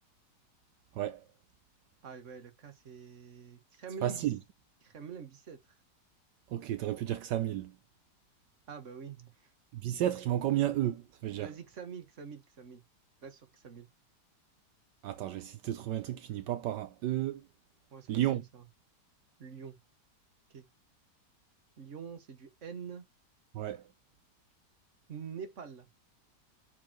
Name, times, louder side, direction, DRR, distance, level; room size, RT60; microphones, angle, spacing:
voice 1, 0.9-1.2 4.0-4.4 6.5-7.7 9.7-11.5 15.0-17.5 18.1-18.4 23.5-23.8, right 12 dB, 80° right, 1.3 m, -32 dB
voice 2, 2.0-4.3 4.8-5.6 8.7-9.5 11.4-12.8 13.2-13.9 17.9-18.7 19.4-19.8 20.5-20.7 21.8-23.0 25.1-25.9, right 6 dB, 45° right, 1.8 m, -46 dB
7.0 x 4.6 x 4.5 m
omnidirectional pair, 1.9 m